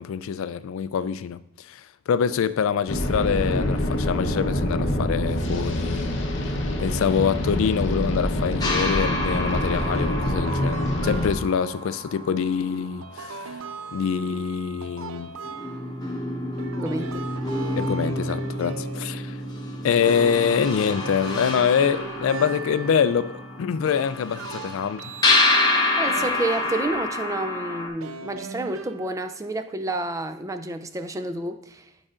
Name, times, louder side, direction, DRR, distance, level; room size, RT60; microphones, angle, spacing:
voice 1, 0.0-1.4 1.7-6.2 6.8-13.6 13.9-15.3 17.7-19.4 19.8-25.0, left 7 dB, 75° left, 0.3 m, -25 dB
sound 1, 2.9-11.3, left 1 dB, 60° left, 0.8 m, -26 dB
sound 2, 8.6-13.5 15.0-15.1 15.4-27.9, left 2 dB, 20° left, 0.9 m, -28 dB
sound 3, 9.7-11.7 13.0-16.2 16.6-19.6 20.1-23.6 24.3-27.4 28.0-29.5, right 4 dB, 85° right, 0.5 m, -39 dB
voice 2, 16.8-17.3 26.0-31.8, right 2 dB, 15° right, 0.4 m, -29 dB
11.0 x 4.8 x 2.5 m
head